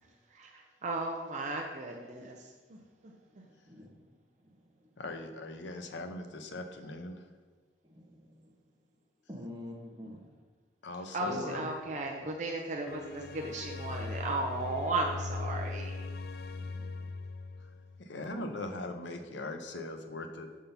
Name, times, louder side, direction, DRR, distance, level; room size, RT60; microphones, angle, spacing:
voice 1, 0.3-2.4 2.7-2.8 11.1-15.9, right 2 dB, 40° right, 1 dB, 0.6 m, -35 dB
voice 2, 3.1-3.9 4.4-4.9 7.8-8.5 9.3-10.2 11.2-11.7 16.5-17.1 18.4-18.5, left 1 dB, 20° right, 0 dB, 0.9 m, -47 dB
voice 3, 5.0-7.2 10.8-11.8 18.0-20.5, left 2 dB, 90° left, 6 dB, 0.7 m, -40 dB
sound 1, 12.9-18.0, left 3 dB, 55° left, 0.3 m, -39 dB
6.9 x 3.6 x 5.6 m, 1.4 s
head